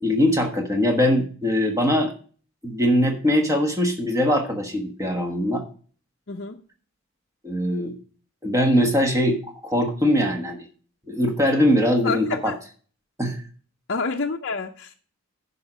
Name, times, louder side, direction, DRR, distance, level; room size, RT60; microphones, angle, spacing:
voice 1, 0.0-2.1 2.6-5.6 7.4-8.0 8.4-10.6 11.1-12.5 13.2-13.4, equal, 15° right, 1.2 m, -21 dB
voice 2, 6.3-6.6 12.0-12.5 13.9-14.9, left 4 dB, 50° left, 0.6 m, -28 dB
10.5 x 5.5 x 4.9 m
head